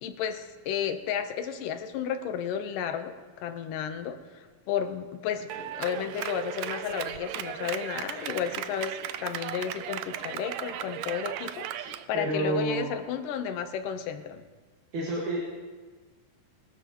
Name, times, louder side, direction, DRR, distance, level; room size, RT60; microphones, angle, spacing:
voice 1, 0.0-14.4, left 8 dB, 80° left, 7 dB, 2.5 m, -33 dB
Clapping, 5.5-12.0, right 11 dB, 85° right, 1.5 m, -36 dB
voice 2, 12.1-12.9 14.9-15.5, right 1 dB, 65° right, -3 dB, 3.3 m, -29 dB
22.5 x 13.0 x 3.0 m, 1.4 s
omnidirectional pair, 3.8 m